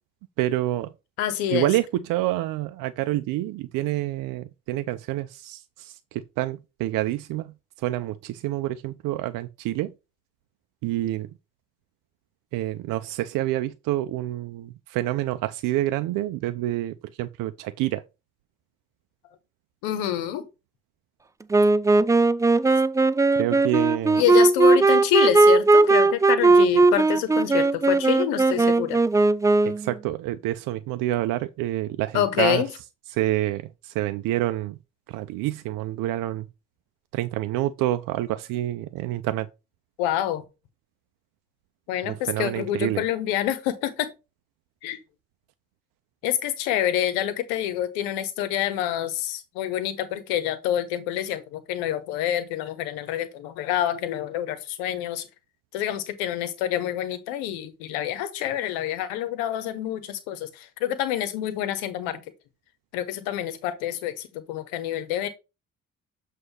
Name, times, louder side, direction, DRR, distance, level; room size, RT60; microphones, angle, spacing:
voice 1, 0.4-0.9 1.5-9.9 10.8-11.3 12.5-18.0 23.4-24.2 29.6-32.6 33.1-34.8 35.1-36.5 37.1-39.5 42.0-43.1, right 15 dB, 55° right, 0.6 m, -28 dB
voice 2, 1.2-1.7 19.8-20.4 24.1-29.0 32.1-32.7 40.0-40.4 41.9-44.1 44.8-45.0 46.2-55.3 55.7-62.2 62.9-65.3, left 11 dB, 70° left, 1.1 m, -27 dB
Wind instrument woodwind instrument, 21.5-29.9, right 3 dB, 10° right, 0.4 m, -18 dB
7.8 x 2.6 x 5.7 m
figure-of-eight pair, 45°, 39 cm